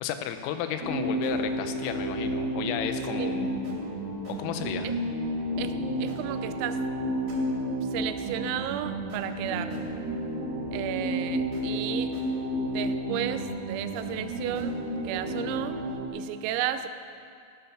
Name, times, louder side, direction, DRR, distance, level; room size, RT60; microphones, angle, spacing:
voice 1, 0.0-3.5 4.3-4.9, left 9 dB, 85° left, 8 dB, 3.5 m, -33 dB
sound 1, 0.8-16.1, right 1 dB, 60° right, 4.9 m, -31 dB
voice 2, 5.6-6.8 7.8-9.8 10.7-12.2 12.7-15.8 16.1-16.9, right 11 dB, 90° right, 10 dB, 3.4 m, -33 dB
16.5 x 11.5 x 5.9 m, 2.3 s
omnidirectional pair, 5.9 m